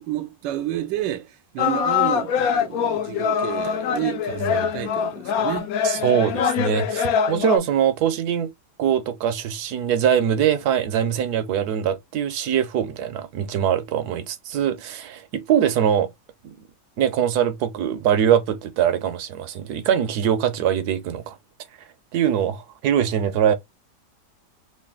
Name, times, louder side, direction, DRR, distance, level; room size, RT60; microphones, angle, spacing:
voice 1, 0.0-5.7, right 13 dB, 85° right, 1.3 m, -30 dB
sound 1, 1.6-7.6, left 7 dB, 70° left, 0.9 m, -23 dB
voice 2, 4.4-4.7 5.8-8.5 8.8-16.1 16.4-16.6 17.0-21.4 22.1-23.5, right 9 dB, 70° right, 1.0 m, -22 dB
3.3 x 2.5 x 3.6 m
omnidirectional pair, 1.9 m